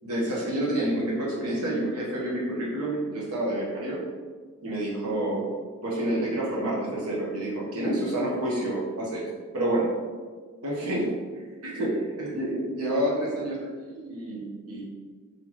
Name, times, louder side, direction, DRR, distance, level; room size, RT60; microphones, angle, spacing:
voice 1, 0.0-4.0 4.6-5.5 5.8-9.2 9.5-9.9 10.6-11.9 12.2-13.6 13.9-14.8, right 1 dB, 90° right, -5 dB, 1.0 m, -28 dB
3.9 x 3.3 x 2.9 m, 1.6 s
head